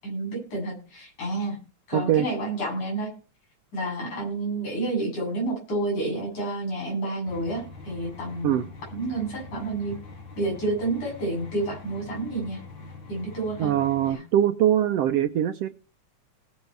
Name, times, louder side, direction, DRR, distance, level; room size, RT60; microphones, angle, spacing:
voice 1, 0.0-1.6 1.9-3.1 3.7-8.6 8.9-10.0 10.4-12.6 13.1-13.7 14.0-14.2, right 2 dB, 80° left, -1 dB, 9.5 m, -29 dB
voice 2, 1.9-2.2 8.4-8.6 13.6-15.7, right 11 dB, 75° right, 9 dB, 1.5 m, -22 dB
sound 1, 7.3-14.1, left 3 dB, 45° left, 3.2 m, -44 dB
18.5 x 7.4 x 4.6 m, 0.34 s
omnidirectional pair, 3.4 m